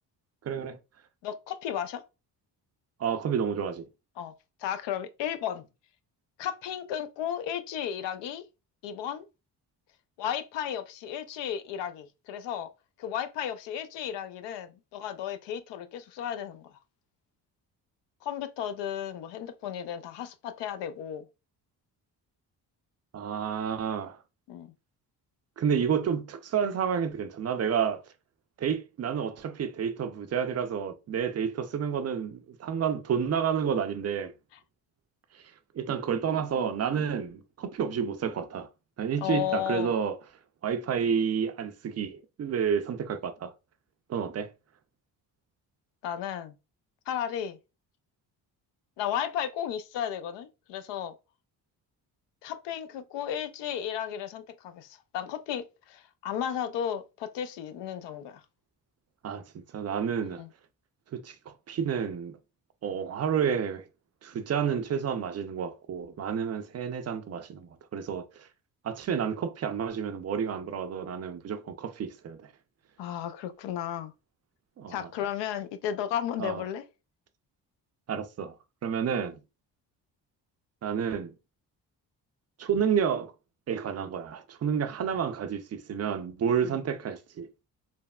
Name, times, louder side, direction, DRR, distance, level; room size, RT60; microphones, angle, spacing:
voice 1, 0.4-0.8 3.0-3.9 23.1-24.2 25.6-28.0 28.6-34.3 35.3-38.7 39.0-40.2 40.6-43.5 44.1-44.5 59.2-60.4 61.1-62.3 62.8-63.8 64.2-68.5 68.8-72.5 74.8-75.1 76.4-76.6 78.1-79.4 80.8-81.3 82.6-83.3 83.7-87.5, right 7 dB, 35° right, 0.4 m, -30 dB
voice 2, 1.2-2.0 4.2-4.3 4.6-5.7 6.4-8.4 8.8-9.3 10.2-12.7 13.0-16.7 18.2-21.3 24.5-24.7 39.2-39.9 46.0-46.5 47.1-47.6 49.0-51.1 52.4-58.4 60.4-60.5 73.0-74.1 74.9-76.8 86.6-86.8, left 9 dB, 70° left, 0.5 m, -34 dB
3.3 x 2.0 x 2.2 m
supercardioid pair, 60°, 44 cm